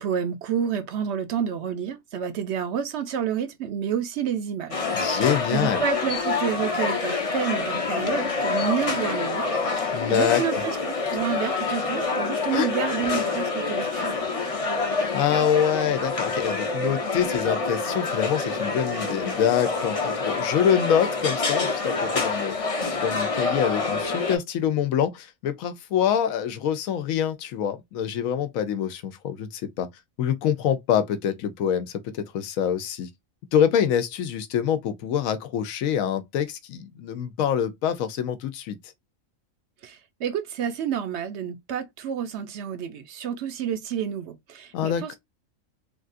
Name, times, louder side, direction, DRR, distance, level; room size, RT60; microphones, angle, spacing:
voice 1, 0.0-5.3 5.5-9.5 9.7-14.2 39.8-45.2, right 8 dB, 65° right, 0.8 m, -29 dB
sound 1, 4.7-24.4, left 4 dB, 35° left, 0.6 m, -27 dB
voice 2, 4.9-5.8 9.9-10.6 12.5-12.7 15.1-22.5 23.0-29.9 30.2-33.1 33.5-38.8 44.7-45.2, left 9 dB, 80° left, 1.0 m, -25 dB
3.4 x 2.4 x 2.5 m
omnidirectional pair, 1.4 m